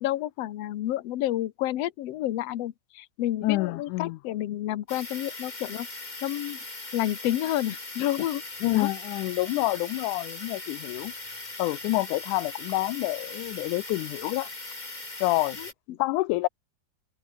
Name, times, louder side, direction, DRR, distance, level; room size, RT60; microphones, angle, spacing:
voice 1, 0.0-5.9 6.2-6.6 6.9-8.4 8.7-8.9 15.6-16.0, left 13 dB, 65° left, 2.0 m, -30 dB
voice 2, 3.4-4.2 8.6-11.1 11.6-14.5 15.2-15.6 16.0-16.5, left 20 dB, 85° left, 2.1 m, -27 dB
sound 1, 4.9-15.7, left 2 dB, 15° left, 2.4 m, -40 dB
omnidirectional pair, 3.5 m